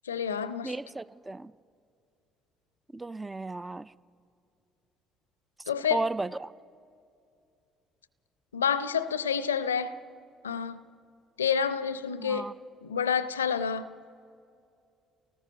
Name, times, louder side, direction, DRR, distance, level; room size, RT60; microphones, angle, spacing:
voice 1, 0.1-0.7 5.7-6.0 8.5-9.9 10.4-10.8 11.4-12.5 12.8-13.9, left 7 dB, 80° left, 0.5 m, -28 dB
voice 2, 0.6-1.5 2.9-3.9 5.9-6.5 12.2-12.5, right 2 dB, 15° right, 0.4 m, -34 dB
30.0 x 19.0 x 5.3 m
figure-of-eight pair, 50°, 0 cm